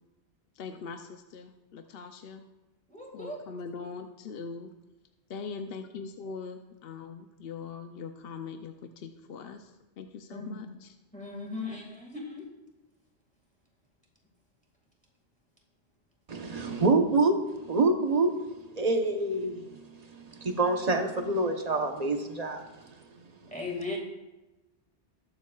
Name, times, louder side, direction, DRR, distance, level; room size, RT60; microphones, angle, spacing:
voice 1, 0.6-2.5 3.1-4.7 5.3-9.7 10.0-10.9, left 5 dB, 60° left, 6 dB, 0.8 m, -41 dB
voice 2, 2.9-3.4 10.3-10.7 11.1-12.5 23.5-24.0, left 3 dB, 5° left, -1 dB, 1.8 m, -37 dB
voice 3, 16.3-18.3 18.8-19.8 20.1-23.0 23.4-23.6, right 3 dB, 35° right, 4 dB, 1.0 m, -27 dB
20.0 x 7.3 x 2.4 m, 1.0 s
omnidirectional pair, 1.2 m